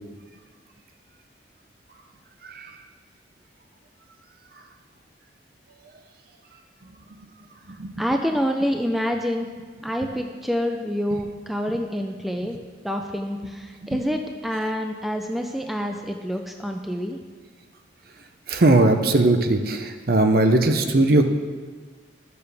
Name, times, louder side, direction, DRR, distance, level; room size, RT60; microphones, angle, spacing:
voice 1, 8.0-9.5 9.8-12.6 12.8-17.2, equal, ahead, 3 dB, 0.4 m, -27 dB
voice 2, 18.5-21.3, right 2 dB, 50° right, 6 dB, 0.6 m, -19 dB
12.0 x 6.8 x 3.4 m, 1.5 s
head